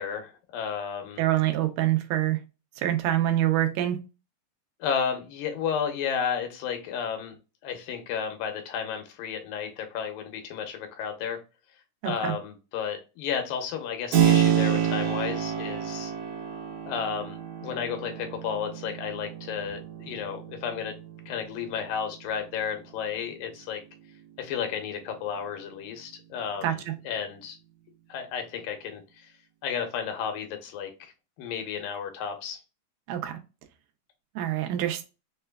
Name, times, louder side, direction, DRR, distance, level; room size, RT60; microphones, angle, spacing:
voice 1, 0.0-1.3 4.8-7.4 7.6-11.4 12.0-16.1 16.9-21.0 21.3-23.8 24.4-27.6 28.1-29.3 29.6-31.1 31.4-32.6, left 7 dB, 85° left, 2.5 m, -32 dB
voice 2, 1.2-2.4 2.8-4.0 12.0-12.3 26.6-26.7 33.1-33.4 34.4-35.0, right 13 dB, 85° right, 2.4 m, -25 dB
Keyboard (musical), 14.1-22.7, right 9 dB, 70° right, 2.4 m, -28 dB
5.8 x 2.3 x 2.2 m
omnidirectional pair, 3.8 m